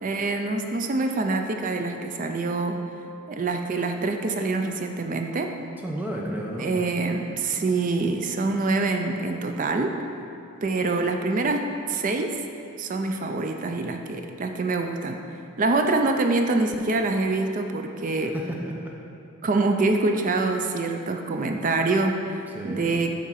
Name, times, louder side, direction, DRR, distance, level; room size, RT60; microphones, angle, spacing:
voice 1, 0.0-2.8 3.3-5.5 6.6-10.0 10.6-12.4 12.8-15.2 15.6-18.3 19.4-22.4 22.6-23.1, right 3 dB, 40° right, 5 dB, 0.4 m, -25 dB
voice 2, 5.8-6.7 18.2-18.9 22.5-22.9, right 1 dB, 10° right, -2 dB, 0.7 m, -32 dB
8.2 x 3.7 x 5.7 m, 2.5 s
head